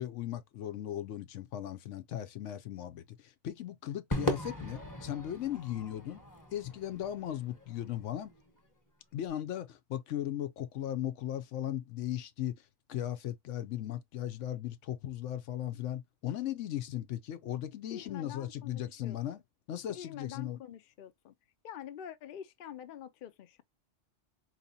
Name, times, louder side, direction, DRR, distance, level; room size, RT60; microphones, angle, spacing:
voice 1, 0.0-6.2 6.5-8.3 9.1-12.5 12.9-19.4 19.7-20.6, left 12 dB, 80° left, 1.0 m, -37 dB
Crowd / Fireworks, 4.1-8.6, left 1 dB, 15° left, 1.0 m, -38 dB
voice 2, 17.9-19.4 19.9-21.3 21.6-23.6, left 10 dB, 55° left, 0.6 m, -46 dB
4.2 x 3.0 x 2.6 m
omnidirectional pair, 1.2 m